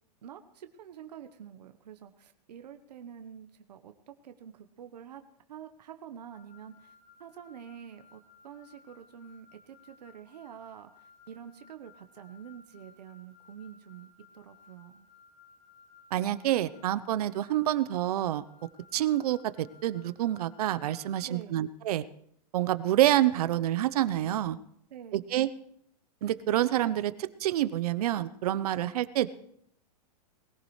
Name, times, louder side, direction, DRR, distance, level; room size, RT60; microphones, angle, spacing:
voice 1, 0.2-5.2 5.5-6.9 7.2-15.1 21.2-21.6 24.9-25.3, right 9 dB, 85° right, 7 dB, 1.2 m, -47 dB
sound 1, 6.3-21.2, left 5 dB, 50° left, 2.3 m, -59 dB
voice 2, 16.1-18.4 18.9-22.0 22.5-24.6 25.1-25.5 26.2-29.3, right 13 dB, 65° right, 15 dB, 0.9 m, -27 dB
20.5 x 15.0 x 3.3 m, 0.70 s
hypercardioid pair, 145°, 21 cm